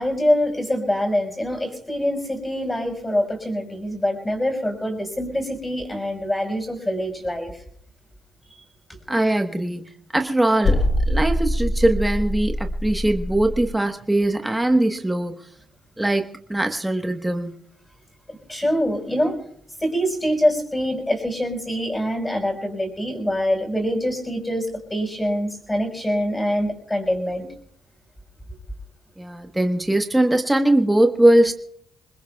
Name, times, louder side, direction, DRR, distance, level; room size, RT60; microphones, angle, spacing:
voice 1, 0.0-7.5 18.5-19.4 19.8-27.5, equal, 15° left, 3 dB, 5.7 m, -24 dB
voice 2, 9.1-15.4 16.0-17.6 29.2-31.5, right 1 dB, 10° right, 5 dB, 1.3 m, -21 dB
sound 1, 10.6-13.7, left 1 dB, 55° left, 2.4 m, -23 dB
25.5 x 20.5 x 2.4 m, 0.65 s
cardioid pair, 90°, 0 cm